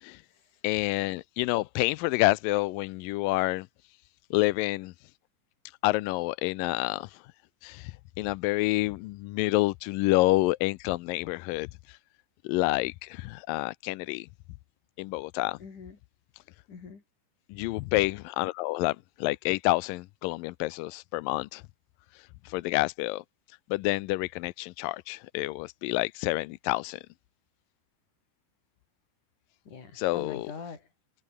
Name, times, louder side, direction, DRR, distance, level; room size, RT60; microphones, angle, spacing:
voice 1, 0.6-3.7 4.3-4.9 5.8-7.2 7.6-12.0 12.4-14.3 15.0-15.6 17.5-21.6 22.1-23.2 23.7-27.0 30.0-30.5, left 20 dB, 80° left, 2.1 m, -28 dB
voice 2, 15.6-16.0 16.7-17.0 17.8-17.9 29.7-30.9, left 5 dB, 55° left, 5.8 m, -43 dB
omnidirectional pair, 4.4 m